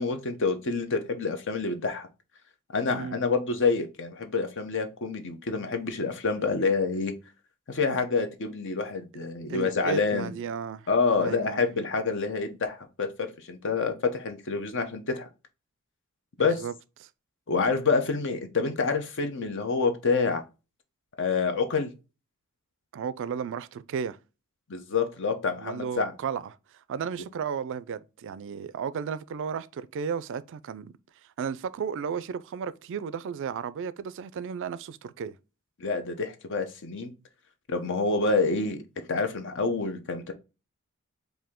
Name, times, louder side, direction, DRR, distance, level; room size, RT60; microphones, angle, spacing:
voice 1, 0.0-2.1 2.7-7.1 7.7-10.3 10.9-15.3 16.4-16.6 17.5-20.4 21.2-21.9 24.7-26.1 35.8-37.1 37.7-38.8 39.1-40.3, left 4 dB, 60° left, 0.8 m, -27 dB
voice 2, 9.5-10.9 11.2-11.6 16.4-16.7 17.0-17.1 22.9-24.2 25.6-30.9 31.4-35.4, right 6 dB, 60° right, 0.3 m, -34 dB
4.7 x 2.7 x 3.6 m
head